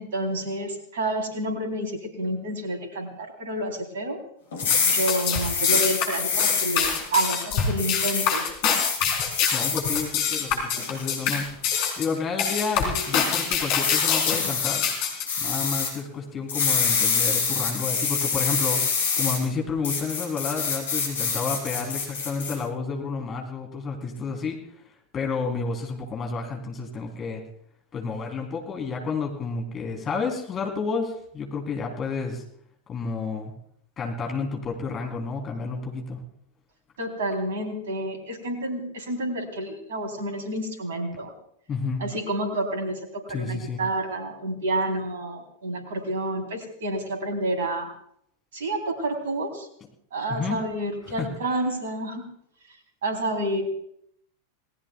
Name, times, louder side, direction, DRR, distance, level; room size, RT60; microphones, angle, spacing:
voice 1, 0.0-4.2 4.8-8.4 37.0-41.3 42.0-47.9 48.5-49.7 50.1-52.2 53.0-53.6, right 1 dB, 60° right, 4 dB, 3.7 m, -29 dB
sound 1, 4.5-7.0 7.8-8.3 8.8-10.0 10.5-11.1 11.7-12.0 13.8-14.7 15.3-15.9 16.5-19.4 19.8-22.6, left 5 dB, 60° left, 4.8 m, -26 dB
sound 2, 4.6-15.3, left 7 dB, 45° left, 4.0 m, -25 dB
voice 2, 9.5-14.9 15.4-18.8 19.2-24.6 25.1-27.4 27.9-32.4 32.9-33.5 34.0-36.2 41.7-42.0 43.3-43.8 50.3-50.6 51.2-51.3, left 4 dB, 25° left, 1 dB, 3.5 m, -30 dB
28.5 x 19.0 x 2.4 m, 0.70 s
figure-of-eight pair, 90°, 0 cm